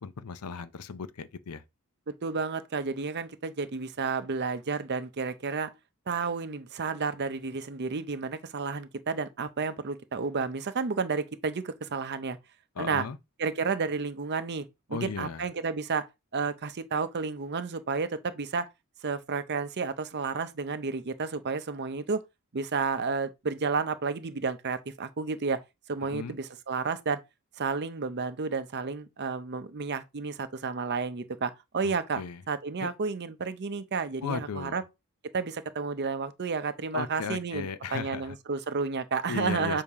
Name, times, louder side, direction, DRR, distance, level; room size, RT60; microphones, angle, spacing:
voice 1, 0.0-1.6 12.8-13.2 14.9-15.4 26.0-26.4 31.8-32.4 32.8-32.9 34.2-34.8 36.9-38.4 39.3-39.8, left 5 dB, 80° left, 0.6 m, -36 dB
voice 2, 2.1-5.7 6.1-12.4 12.8-13.0 13.4-16.1 16.3-18.7 19.0-22.2 22.5-25.6 25.9-27.2 27.6-32.2 32.5-34.8 35.3-37.7 37.9-39.8, right 4 dB, 50° right, 0.6 m, -31 dB
7.1 x 2.8 x 4.7 m
head